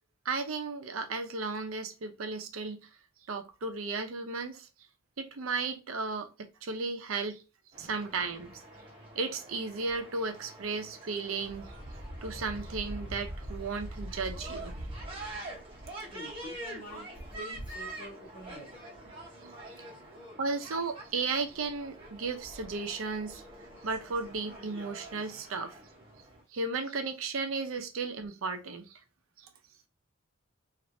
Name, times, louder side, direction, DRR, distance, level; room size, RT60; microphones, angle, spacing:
voice 1, 0.3-2.8 3.3-4.7 5.2-6.3 6.6-7.4 7.8-8.6 9.1-11.7 12.2-14.8 20.4-23.4 23.8-25.8 26.5-29.0, right 4 dB, 80° right, 0.6 m, -34 dB
sound 1, 7.7-26.4, right 1 dB, 25° right, 1.0 m, -44 dB
voice 2, 16.1-17.1 17.3-18.7, left 1 dB, 35° left, 1.0 m, -46 dB
3.1 x 2.5 x 2.6 m
head